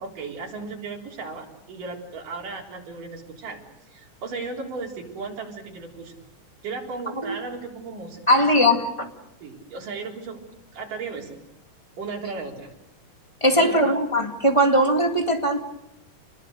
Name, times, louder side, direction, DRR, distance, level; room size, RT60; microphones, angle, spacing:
voice 1, 0.0-3.6 3.9-6.2 6.6-8.7 9.4-10.4 10.7-11.4 12.0-12.7 13.5-13.9, right 4 dB, 90° right, -1 dB, 5.5 m, -35 dB
voice 2, 8.3-9.1 13.4-15.6, equal, 10° left, 3 dB, 1.6 m, -20 dB
29.0 x 21.5 x 6.6 m, 0.85 s
omnidirectional pair, 3.6 m